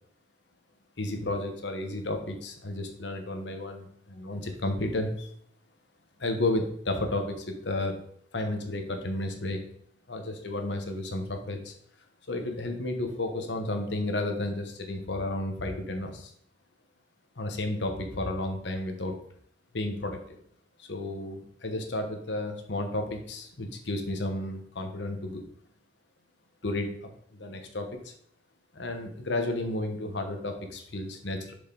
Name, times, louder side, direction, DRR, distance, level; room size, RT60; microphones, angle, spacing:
voice 1, 1.0-5.3 6.2-7.9 8.3-9.6 10.1-11.7 12.3-16.3 17.4-19.1 19.7-20.4 20.8-25.4 26.6-26.9 27.3-28.0 28.7-31.5, left 2 dB, 75° left, 5 dB, 1.1 m, -32 dB
7.0 x 5.1 x 3.9 m, 0.67 s
head